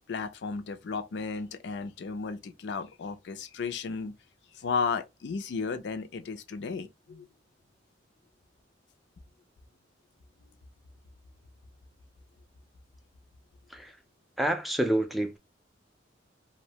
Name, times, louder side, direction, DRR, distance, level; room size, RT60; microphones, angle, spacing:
voice 1, 0.0-4.1 4.5-7.3, left 5 dB, 70° left, 0.4 m, -34 dB
voice 2, 14.4-15.4, right 1 dB, ahead, 0.3 m, -28 dB
2.6 x 2.1 x 2.7 m
head